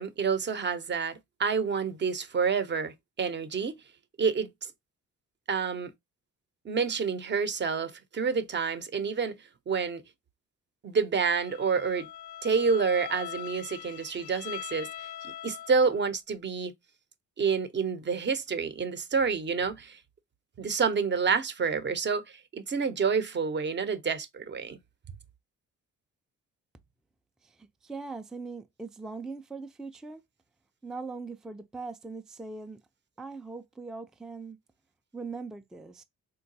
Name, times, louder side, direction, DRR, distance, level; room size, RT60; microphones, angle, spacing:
voice 1, 0.0-3.7 4.2-4.5 5.5-5.9 6.6-9.3 9.7-10.0 10.8-12.1 12.4-14.9 15.2-16.7 17.4-20.0 20.6-24.8, right 5 dB, 35° right, 0.6 m, -28 dB
Bowed string instrument, 11.4-16.1, left 11 dB, 85° left, 0.5 m, -42 dB
voice 2, 27.4-30.2 30.8-32.8 33.2-34.6 35.1-36.0, right 4 dB, ahead, 0.3 m, -40 dB
3.8 x 2.2 x 2.6 m
cardioid pair, 90°, 30 cm